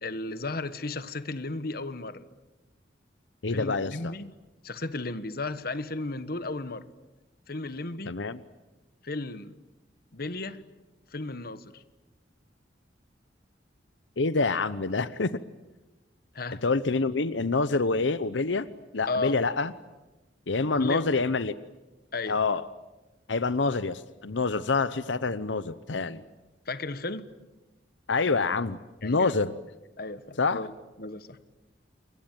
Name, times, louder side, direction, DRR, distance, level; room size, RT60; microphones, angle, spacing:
voice 1, 0.0-2.2 3.5-4.3 4.6-6.9 7.5-8.1 9.0-9.5 10.1-10.6 11.1-11.8 16.3-16.6 19.1-19.4 20.8-21.0 22.1-22.4 26.7-27.3 29.0-29.3 30.0-31.4, left 3 dB, 55° left, 13 dB, 1.3 m, -34 dB
voice 2, 3.4-4.1 8.1-8.4 14.2-15.3 16.6-18.7 18.9-19.7 20.5-21.5 22.3-22.6 23.3-26.2 28.1-29.5 30.4-30.6, left 3 dB, 90° left, 14 dB, 0.9 m, -26 dB
28.0 x 23.0 x 9.1 m, 1.1 s
head